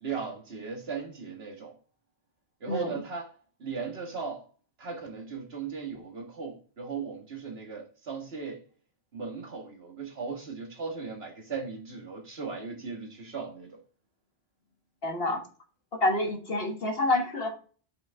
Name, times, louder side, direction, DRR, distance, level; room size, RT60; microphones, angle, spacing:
voice 1, 0.0-1.8 2.6-3.3 3.6-4.5 4.8-8.6 9.1-13.8, right 5 dB, 75° right, 2.0 m, -37 dB
voice 2, 15.0-15.4 16.0-17.5, left 2 dB, 65° left, 1.8 m, -27 dB
7.0 x 6.3 x 3.5 m
omnidirectional pair, 1.1 m